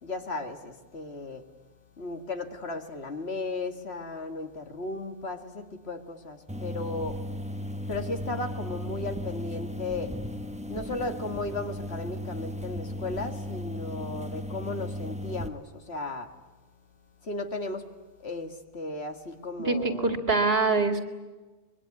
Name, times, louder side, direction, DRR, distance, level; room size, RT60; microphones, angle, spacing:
voice 1, 0.0-1.4 2.0-7.2 7.9-10.2 10.7-16.3 17.2-17.9 18.2-20.2, left 2 dB, 70° left, 6 dB, 2.3 m, -35 dB
sound 1, 6.5-15.5, left 1 dB, 5° right, 1.0 m, -36 dB
voice 2, 19.6-21.0, right 3 dB, 65° right, 7 dB, 2.5 m, -24 dB
24.5 x 22.5 x 9.7 m, 1.2 s
omnidirectional pair, 1.1 m